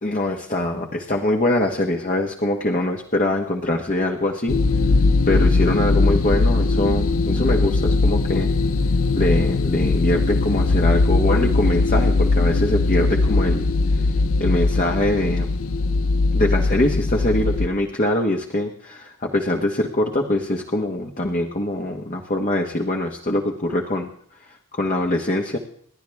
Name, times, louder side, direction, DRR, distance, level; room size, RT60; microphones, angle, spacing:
voice 1, 0.0-4.6 5.3-8.5 9.2-13.7 13.9-14.0 14.4-15.5 16.3-24.1 24.4-25.6, left 1 dB, 35° left, 1 dB, 1.4 m, -23 dB
sound 1, 4.5-17.7, left 3 dB, 70° left, 0.8 m, -20 dB
29.5 x 11.5 x 3.5 m, 0.64 s
head